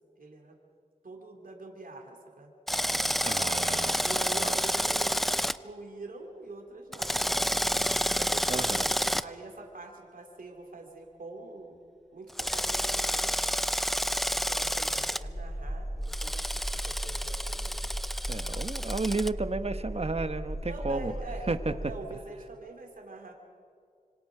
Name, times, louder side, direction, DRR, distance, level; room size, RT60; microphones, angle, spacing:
voice 1, 0.2-0.6 1.0-2.5 4.0-7.4 8.2-8.7 9.2-11.8 12.1-13.5 14.3-17.9 20.7-23.3, right 2 dB, 80° right, 2 dB, 2.8 m, -44 dB
Drill, 2.7-5.6 6.9-9.2 12.4-15.2 16.1-19.3, equal, ahead, 0.6 m, -29 dB
voice 2, 3.2-4.1 4.4-4.6 8.5-8.9 18.3-21.1 21.5-21.7, right 3 dB, 45° right, 10 dB, 1.3 m, -32 dB
sound 1, 15.2-22.0, right 1 dB, 20° left, 4.2 m, -36 dB
26.0 x 25.0 x 5.0 m, 2.3 s
cardioid pair, 45°, 14 cm